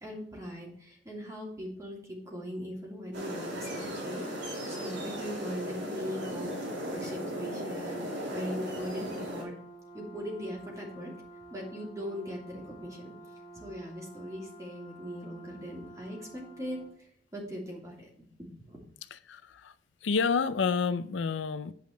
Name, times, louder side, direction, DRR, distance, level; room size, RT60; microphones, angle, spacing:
voice 1, 0.0-6.5 6.9-8.0 8.3-9.5 9.9-11.1 11.5-13.1 13.5-18.1 18.6-18.8, equal, 20° right, -2 dB, 2.7 m, -40 dB
sound 1, 3.1-9.4, equal, 70° right, 2.6 m, -37 dB
Brass instrument, 8.3-17.0, right 2 dB, 30° left, 2.5 m, -50 dB
voice 2, 19.1-19.7 20.0-21.7, left 5 dB, 80° left, 13 dB, 0.5 m, -29 dB
9.3 x 5.3 x 4.5 m, 0.62 s
head